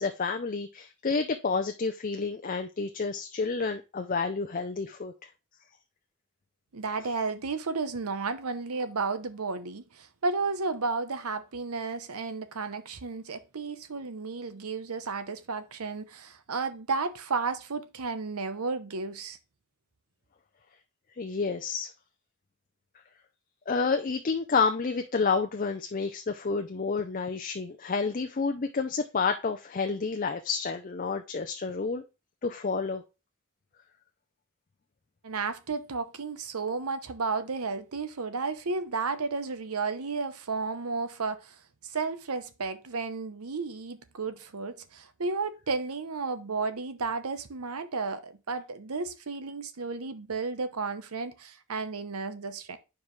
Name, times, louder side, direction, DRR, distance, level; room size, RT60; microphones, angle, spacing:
voice 1, 0.0-5.1 21.2-21.9 23.7-32.0 32.4-33.0, left 4 dB, 35° left, 0.5 m, -29 dB
voice 2, 6.7-19.4 35.2-41.6 41.8-52.8, right 4 dB, 80° right, 0.8 m, -33 dB
9.4 x 4.8 x 3.1 m
head